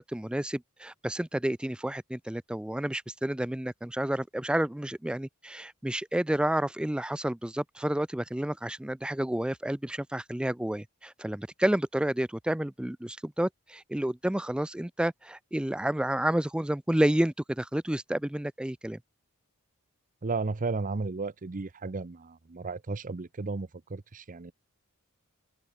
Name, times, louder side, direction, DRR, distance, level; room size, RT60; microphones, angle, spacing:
voice 1, 0.0-19.0, right 1 dB, 5° right, 0.3 m, -30 dB
voice 2, 20.2-24.5, right 3 dB, 35° right, 0.6 m, -34 dB
open air
head